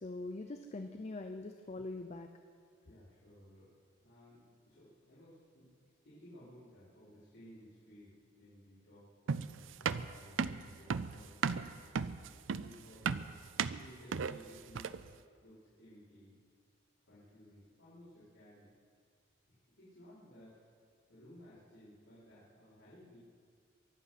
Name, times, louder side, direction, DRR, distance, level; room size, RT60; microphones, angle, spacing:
voice 1, 0.0-2.3, left 2 dB, 35° left, 6 dB, 0.6 m, -43 dB
voice 2, 2.8-3.7 4.0-5.7 6.0-11.8 12.5-13.2 13.7-14.9 15.4-16.4 17.0-18.7 19.5-20.6 21.1-23.2, equal, 80° left, -13 dB, 5.1 m, -57 dB
sound 1, 9.3-15.1, right 6 dB, 80° right, 0.5 m, -35 dB
23.5 x 8.1 x 6.0 m, 2.1 s
head